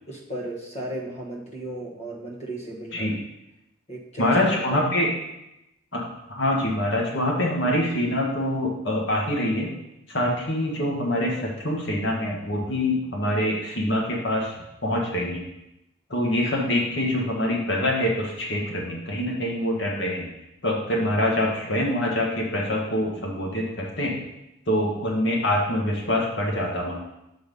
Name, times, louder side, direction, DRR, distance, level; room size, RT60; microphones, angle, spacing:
voice 1, 0.1-3.2 3.9-4.8, right 1 dB, 35° left, -1 dB, 1.3 m, -35 dB
voice 2, 4.2-5.1 5.9-9.8 10.1-15.4 16.1-20.3 20.6-24.2 24.7-27.0, left 1 dB, 60° left, -2 dB, 1.5 m, -25 dB
6.8 x 4.0 x 5.3 m, 0.88 s
head